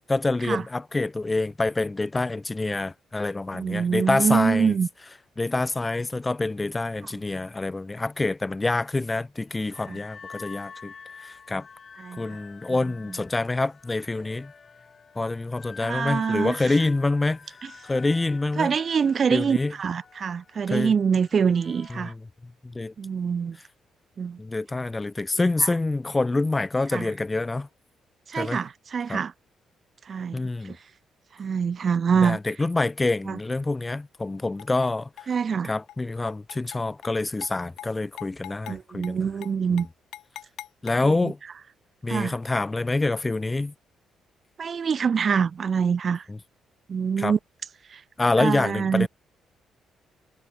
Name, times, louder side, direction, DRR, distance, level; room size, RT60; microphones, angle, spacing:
voice 1, 0.0-4.8 5.4-10.9 11.2-11.7 12.2-14.5 15.2-17.6 17.9-18.7 19.3-19.7 20.7-20.9 21.9-22.9 24.4-27.7 28.4-28.6 29.1-29.2 30.3-30.8 32.2-35.3 35.6-39.3 39.7-39.9 40.8-41.4 42.0-43.7 46.3-46.4 47.2-47.3 48.2-49.1, left 2 dB, 20° left, 0.8 m, -26 dB
voice 2, 3.5-4.9 9.9-10.0 12.0-12.3 15.8-16.6 18.6-22.1 23.0-23.6 24.2-24.4 26.9-27.1 28.3-29.3 30.1-30.4 30.7-30.8 31.4-32.4 33.3-33.4 35.3-35.7 38.7-39.9 41.0-41.3 42.1-42.3 44.6-46.2 46.9-47.4 47.9-48.0 48.4-49.1, right 6 dB, 45° right, 0.7 m, -25 dB
sound 1, 9.5-22.1, left 5 dB, 40° left, 7.6 m, -46 dB
sound 2, 34.6-34.9 35.2-35.6 35.9-36.0 36.3-37.1 37.4-37.5 37.8-37.9 38.2-38.8 39.0-39.1 39.4-39.5 39.8-40.9, left 13 dB, 85° left, 2.4 m, -41 dB
cardioid pair, 90°, 0 cm